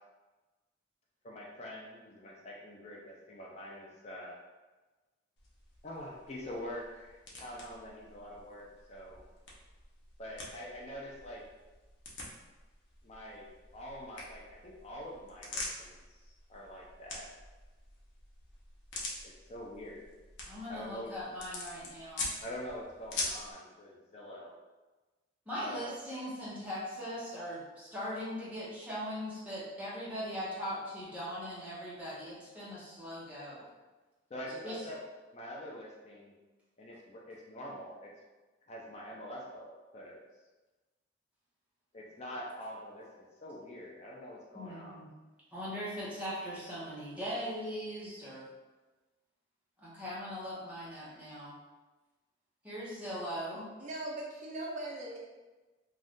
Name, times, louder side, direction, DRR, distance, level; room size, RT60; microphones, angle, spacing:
voice 1, 1.2-4.4 5.8-9.2 10.2-11.4 13.0-17.3 19.2-20.1 20.7-21.1 22.4-24.6 25.6-26.0 34.3-35.0 35.3-36.3 36.8-38.1 38.7-40.2 41.9-45.0, equal, 35° left, -3 dB, 0.4 m, -45 dB
sound 1, 5.4-23.5, left 2 dB, 70° left, 0.7 m, -45 dB
voice 2, 20.5-22.3 25.5-33.6 34.6-34.8 44.5-45.1 45.5-48.5 49.8-51.5 52.6-53.7, equal, 5° right, -9 dB, 0.8 m, -40 dB
voice 3, 53.8-55.2, right 2 dB, 40° right, -2 dB, 0.4 m, -39 dB
2.6 x 2.3 x 3.5 m, 1.2 s
head